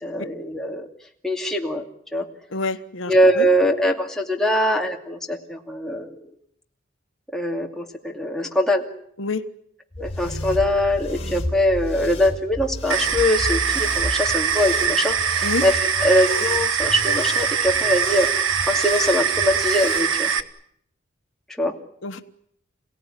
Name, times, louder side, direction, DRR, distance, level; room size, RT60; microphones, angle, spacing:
voice 1, 0.0-0.8 1.2-2.2 3.1-6.2 7.3-8.9 10.0-18.3 18.7-20.3 21.6-21.7, equal, ahead, 0 dB, 2.6 m, -22 dB
voice 2, 2.5-3.5 9.2-9.5 15.4-15.6 22.0-22.2, left 3 dB, 75° left, 9 dB, 1.2 m, -27 dB
sound 1, 9.9-20.1, left 1 dB, 30° left, 3.9 m, -33 dB
sound 2, 12.9-20.4, right 7 dB, 80° right, 1.3 m, -23 dB
28.5 x 17.5 x 10.0 m, 0.70 s
head